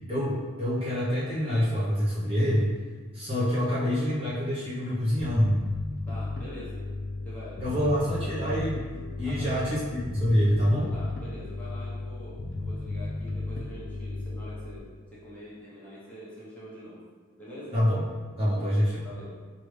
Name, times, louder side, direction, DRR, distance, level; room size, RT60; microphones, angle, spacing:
voice 1, 0.1-2.7 3.1-5.6 7.6-8.8 9.2-10.9 17.7-18.0 18.4-19.0, equal, 25° right, -9 dB, 0.8 m, -26 dB
Bass guitar, 5.2-14.8, left 2 dB, 60° left, 0.5 m, -34 dB
voice 2, 6.1-6.8 7.2-8.4 9.2-9.5 10.7-17.0 17.4-17.7 18.4-18.7 19.0-19.4, left 1 dB, 5° left, -10 dB, 1.0 m, -45 dB
4.8 x 2.5 x 3.3 m, 1.5 s
head